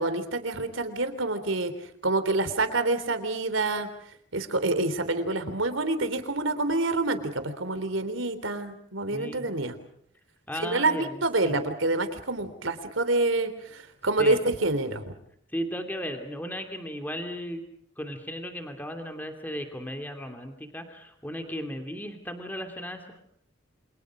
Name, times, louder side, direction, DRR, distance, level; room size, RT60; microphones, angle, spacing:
voice 1, 0.0-1.7 2.0-3.9 4.3-9.7 10.6-15.0, right 2 dB, 90° right, 11 dB, 3.4 m, -27 dB
voice 2, 9.1-9.4 10.5-11.6 14.2-14.4 15.5-17.6 18.0-23.2, equal, 10° left, 5 dB, 2.8 m, -36 dB
29.0 x 28.0 x 5.1 m, 0.65 s
head